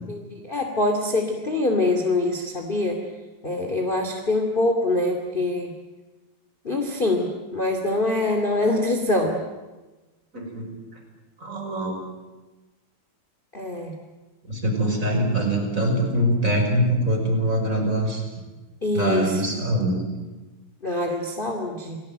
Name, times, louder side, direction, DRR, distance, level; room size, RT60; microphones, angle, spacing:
voice 1, 0.1-3.0 3.4-5.7 6.6-9.4 13.5-13.9 18.8-19.4 20.8-22.0, left 2 dB, 15° left, 3 dB, 2.0 m, -24 dB
voice 2, 10.3-10.7 11.4-12.0 14.5-18.4 18.9-20.0 20.9-21.0, right 1 dB, 20° right, 1 dB, 6.1 m, -23 dB
29.0 x 19.5 x 9.2 m, 1.2 s
omnidirectional pair, 4.2 m